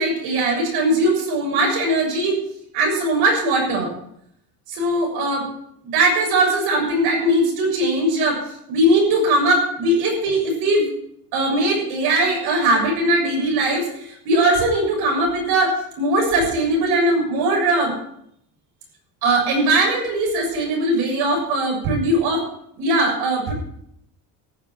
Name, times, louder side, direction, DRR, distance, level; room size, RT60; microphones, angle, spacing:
voice 1, 0.0-2.4 2.7-3.9 4.7-5.5 5.9-8.4 8.7-10.9 11.3-17.9 19.2-22.5 22.8-23.5, right 1 dB, 70° right, 1 dB, 7.1 m, -20 dB
14.5 x 8.2 x 7.7 m, 0.72 s
cardioid pair, 155°, 41 cm